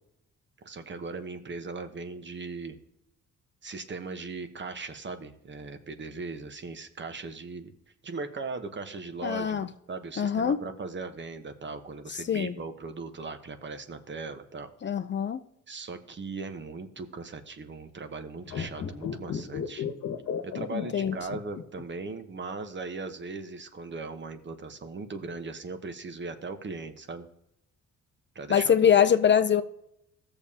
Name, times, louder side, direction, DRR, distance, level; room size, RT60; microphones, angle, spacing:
voice 1, 0.6-2.8 3.6-7.7 8.0-14.7 15.7-19.8 20.4-27.3 28.3-28.9, right 4 dB, 40° right, 1.1 m, -38 dB
voice 2, 9.2-9.7 10.2-10.6 12.3-12.5 14.8-15.4 20.7-21.1 28.5-29.6, left 8 dB, 40° left, 0.6 m, -23 dB
sound 1, 18.4-21.9 22.1-22.2, left 7 dB, 60° left, 1.2 m, -34 dB
15.5 x 6.9 x 2.8 m
cardioid pair, 90°, 30 cm